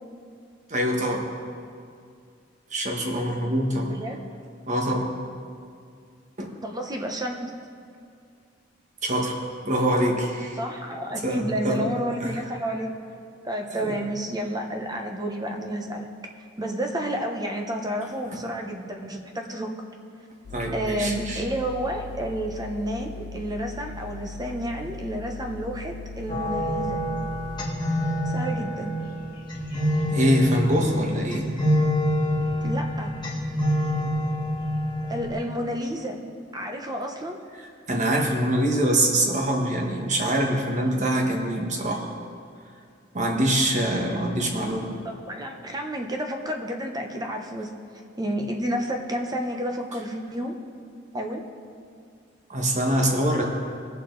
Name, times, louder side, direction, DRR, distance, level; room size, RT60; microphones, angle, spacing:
voice 1, 0.7-1.3 2.7-3.9 4.7-5.1 6.4-6.5 9.0-9.3 9.6-10.6 11.2-11.9 12.2-12.4 13.7-14.0 20.5-21.4 30.1-31.5 37.9-42.0 43.1-44.9 52.5-53.4, right 1 dB, 40° right, 0 dB, 1.4 m, -24 dB
voice 2, 3.7-4.2 6.6-7.5 10.6-12.9 13.4-16.1 16.6-19.7 20.7-27.0 28.3-29.0 32.6-33.2 35.1-36.2 36.5-37.4 44.0-44.2 45.0-47.7 48.2-50.5 51.1-51.4, equal, 20° right, 3 dB, 0.9 m, -30 dB
sound 1, 20.4-27.7, left 3 dB, 65° left, 0.5 m, -39 dB
sound 2, 26.3-35.3, equal, 25° left, 1.8 m, -26 dB
18.5 x 6.8 x 4.0 m, 2.3 s
head